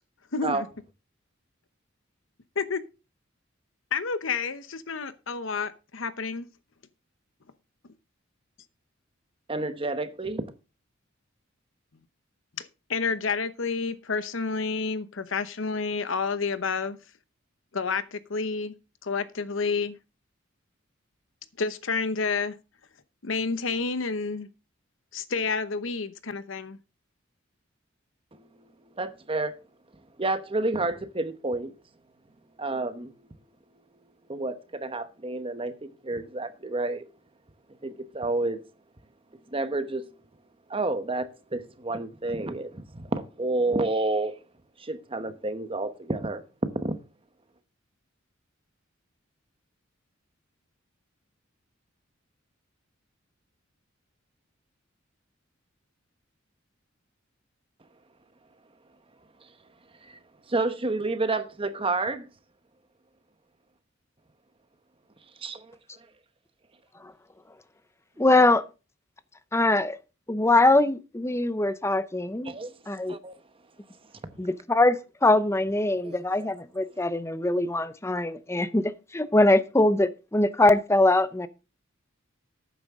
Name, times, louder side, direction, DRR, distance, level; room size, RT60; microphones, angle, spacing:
voice 1, 0.3-0.7 2.6-2.8 3.9-6.5 12.6-17.0 17.7-18.7 19.0-20.0 21.6-22.5 23.2-24.5 25.1-26.8, left 4 dB, 70° left, 0.9 m, -29 dB
voice 2, 9.5-10.4 28.3-28.7 28.9-29.6 30.2-31.7 32.6-33.1 34.3-37.1 37.8-38.6 39.5-40.1 40.7-44.4 44.8-46.4 46.8-46.9 60.0-60.2 60.5-62.3 65.4-65.6 72.4-72.7 73.1-73.3 74.3-74.4 76.0-76.2, right 2 dB, 25° right, 1.0 m, -30 dB
voice 3, 68.2-68.6 69.5-70.0 70.3-72.5 72.9-73.2 74.4-81.5, left 2 dB, 15° left, 0.7 m, -22 dB
11.5 x 9.3 x 3.7 m
head